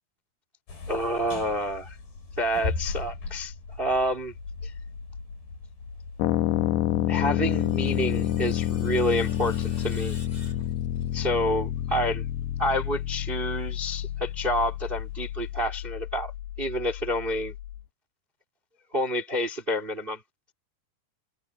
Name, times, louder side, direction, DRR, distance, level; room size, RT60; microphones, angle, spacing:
sound 1, 0.7-15.7, left 3 dB, 65° left, 9.3 m, -41 dB
voice 1, 0.9-2.0 2.4-4.3 4.6-4.7 7.1-10.1 11.1-12.3 12.6-16.3 16.6-17.5 18.9-20.2, equal, 20° right, 1.6 m, -28 dB
sound 2, 6.2-17.8, left 12 dB, 90° left, 3.2 m, -29 dB
Screech, 7.0-11.3, left 2 dB, 25° left, 7.7 m, -50 dB
omnidirectional pair, 4.7 m